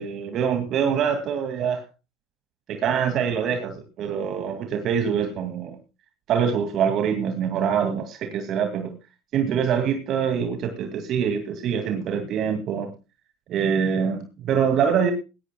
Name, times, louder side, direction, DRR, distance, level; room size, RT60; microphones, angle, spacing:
voice 1, 0.0-1.8 2.7-5.8 6.3-9.0 9.3-12.9 13.5-15.1, right 7 dB, 50° right, 7 dB, 2.3 m, -24 dB
18.0 x 17.5 x 2.3 m, 0.29 s
hypercardioid pair, 70°, 0 cm